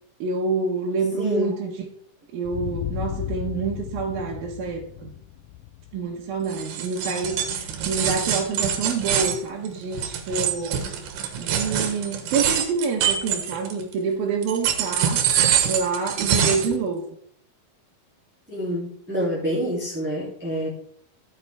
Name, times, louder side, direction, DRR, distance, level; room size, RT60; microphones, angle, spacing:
voice 1, 0.2-1.7 2.3-5.1 5.9-10.8 11.4-15.3 15.7-17.1, right 5 dB, 75° right, -3 dB, 2.9 m, -27 dB
voice 2, 1.2-1.6 7.0-7.1 18.5-20.7, equal, 5° right, -6 dB, 2.1 m, -27 dB
sound 1, 2.4-7.0, left 13 dB, 85° left, 1.9 m, -34 dB
sound 2, 6.5-13.9 14.4-16.8, right 8 dB, 90° right, 3.3 m, -24 dB
13.5 x 8.7 x 3.5 m, 0.64 s
omnidirectional pair, 4.3 m